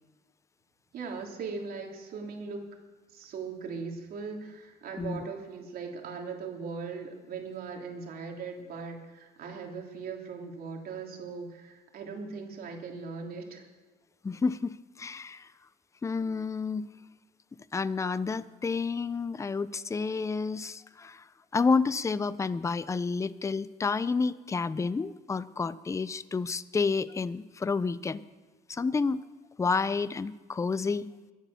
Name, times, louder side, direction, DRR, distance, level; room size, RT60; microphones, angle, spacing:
voice 1, 0.9-2.6 3.1-13.7, right 5 dB, 60° right, 1 dB, 3.2 m, -39 dB
voice 2, 14.2-15.5 16.0-16.9 17.7-21.3 21.5-28.2 28.7-29.2 29.6-31.1, left 4 dB, 15° left, 16 dB, 0.5 m, -30 dB
22.5 x 8.3 x 7.0 m, 1.3 s
cardioid pair, 110°, 17 cm